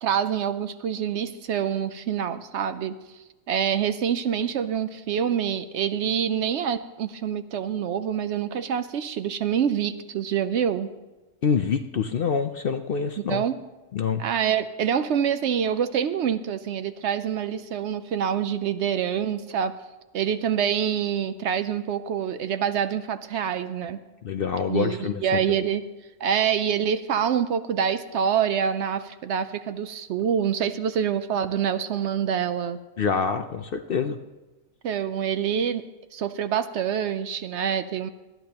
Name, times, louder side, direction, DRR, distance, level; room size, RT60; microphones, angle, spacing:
voice 1, 0.0-10.9 13.3-13.6 14.2-19.7 20.1-24.0 24.7-25.8 26.2-32.8 34.8-35.8 36.1-38.1, right 8 dB, 65° right, 11 dB, 0.8 m, -26 dB
voice 2, 11.4-13.4 13.9-14.2 24.2-25.6 33.0-34.2, left 6 dB, 60° left, 8 dB, 0.6 m, -26 dB
20.0 x 12.0 x 2.9 m, 1.1 s
omnidirectional pair, 1.4 m